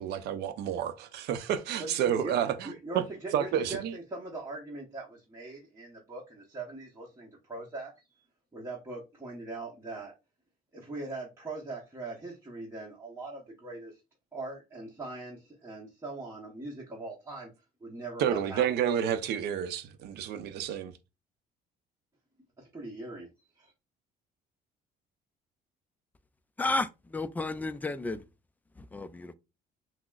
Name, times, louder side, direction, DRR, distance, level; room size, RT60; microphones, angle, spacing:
voice 1, 0.0-2.7 3.3-4.0 18.2-20.9, right 9 dB, 75° right, 0.5 m, -30 dB
voice 2, 1.8-7.9 8.5-10.1 10.7-14.0 14.3-17.5 17.8-18.6 22.6-23.3 23.5-23.7, right 2 dB, 15° right, 0.9 m, -41 dB
voice 3, 26.6-28.2 28.9-29.3, left 3 dB, 10° left, 0.3 m, -32 dB
5.9 x 2.0 x 2.4 m
cardioid pair, 110°, 17 cm